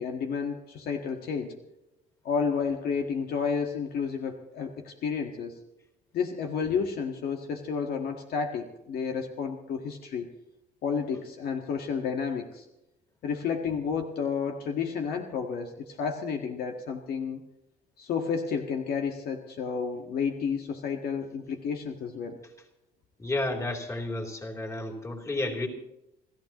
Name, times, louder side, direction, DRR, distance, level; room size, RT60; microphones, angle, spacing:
voice 1, 0.0-1.5 2.2-5.6 6.1-10.3 10.8-12.6 13.2-17.4 18.0-22.4, left 6 dB, 65° left, 3 dB, 1.6 m, -31 dB
voice 2, 23.2-25.7, left 2 dB, 20° left, 1 dB, 3.2 m, -31 dB
28.5 x 14.5 x 3.0 m, 0.89 s
cardioid pair, 110°, 17 cm